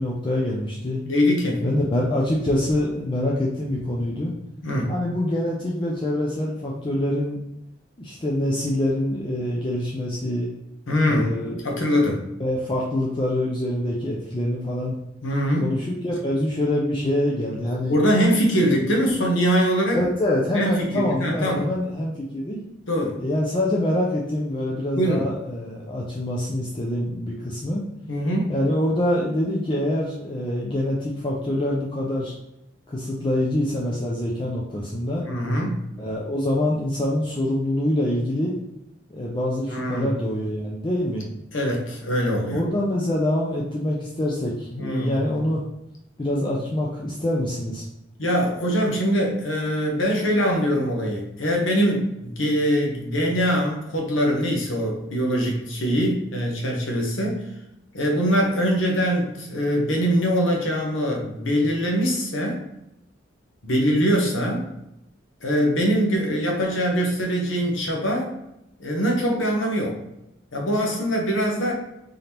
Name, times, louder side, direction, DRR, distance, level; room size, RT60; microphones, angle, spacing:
voice 1, 0.0-1.0 1.6-4.3 4.9-7.4 8.0-10.5 11.1-11.6 12.4-14.9 15.6-17.9 19.9-22.6 23.2-27.8 28.5-32.3 32.9-35.3 36.0-38.6 39.1-41.3 42.5-45.6 46.2-47.8, left 1 dB, 25° left, -3 dB, 0.5 m, -25 dB
voice 2, 1.0-1.6 4.6-4.9 10.9-11.3 11.6-12.2 15.2-15.7 17.7-20.0 20.5-21.7 22.9-23.1 24.9-25.2 28.1-28.6 35.3-35.8 39.7-40.1 41.5-42.6 44.8-45.2 48.2-57.4 57.9-62.6 63.6-64.7 65.4-68.3 68.8-70.0 70.5-71.7, equal, 75° left, 0 dB, 1.0 m, -23 dB
3.8 x 3.5 x 2.8 m, 0.84 s
head